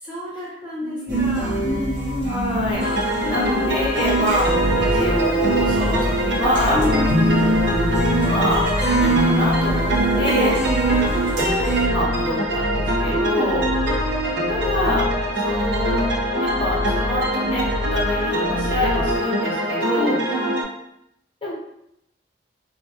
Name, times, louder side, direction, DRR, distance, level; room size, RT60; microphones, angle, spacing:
voice 1, 0.0-2.4 3.2-3.8 6.7-7.1 10.2-10.8 13.1-13.7 19.9-20.6, left 1 dB, 10° right, -9 dB, 0.6 m, -29 dB
voice 2, 0.8-1.5 2.3-6.8 8.1-8.7 9.0-10.6 11.9-13.7 14.5-15.0 15.4-16.1 16.4-20.2 21.4-21.5, left 1 dB, 30° left, -6 dB, 0.8 m, -26 dB
sound 1, 1.1-11.9, right 1 dB, 90° right, 0.9 m, -23 dB
sound 2, 2.7-20.6, equal, 70° right, 0.5 m, -24 dB
sound 3, 4.4-19.2, left 1 dB, 70° left, 0.3 m, -29 dB
2.2 x 2.2 x 2.6 m, 0.79 s
head